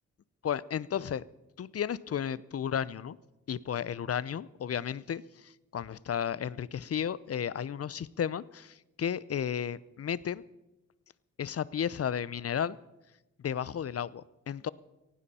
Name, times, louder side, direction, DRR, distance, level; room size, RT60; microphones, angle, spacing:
voice 1, 0.4-1.2 1.6-3.2 3.5-10.4 11.4-12.8 13.4-14.7, left 8 dB, 50° left, 20 dB, 0.6 m, -33 dB
18.5 x 16.0 x 4.2 m, 1.0 s
supercardioid pair, 50°, 31 cm